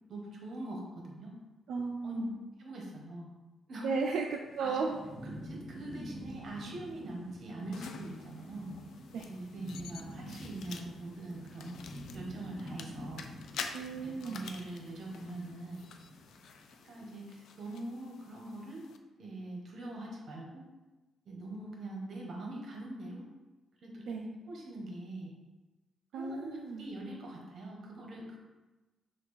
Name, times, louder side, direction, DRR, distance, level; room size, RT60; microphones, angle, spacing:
voice 1, 0.1-1.4 2.0-2.2 2.6-3.3 3.7-3.9 4.6-4.8 5.2-8.7 9.2-11.8 12.1-13.3 14.0-15.8 16.8-18.9 19.2-20.7 21.3-23.2 23.8-25.3 26.1-28.4, right 2 dB, 45° right, -1 dB, 0.9 m, -43 dB
voice 2, 1.7-2.4 3.8-5.0 9.1-9.3 13.7-14.5 24.1-24.2 26.1-26.9, right 4 dB, 75° right, 1 dB, 0.3 m, -35 dB
Thunderstorm / Rain, 4.4-16.7, equal, 20° left, 1.3 m, -48 dB
sound 1, 7.7-19.0, left 6 dB, 70° left, 0.3 m, -48 dB
5.8 x 2.4 x 3.1 m, 1.1 s
cardioid pair, 160°, 0 cm